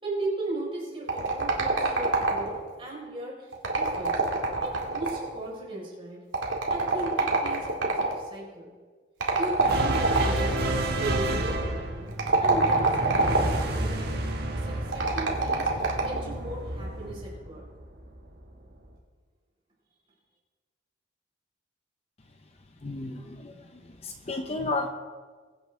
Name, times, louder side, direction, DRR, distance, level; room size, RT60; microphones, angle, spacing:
voice 1, 0.0-4.2 4.6-6.2 6.7-8.7 9.4-10.6 10.9-12.1 12.4-14.0 14.6-17.7, right 2 dB, 30° right, -4 dB, 4.1 m, -37 dB
sound 1, 1.1-2.7 3.5-5.4 6.3-8.2 9.2-10.5 12.1-13.7 14.9-16.3, right 3 dB, 85° right, 2.0 m, -25 dB
sound 2, 9.6-18.2, right 1 dB, 55° right, 1.5 m, -30 dB
voice 2, 22.8-24.9, left 2 dB, 35° left, 4 dB, 0.7 m, -33 dB
22.5 x 8.3 x 3.4 m, 1.5 s
head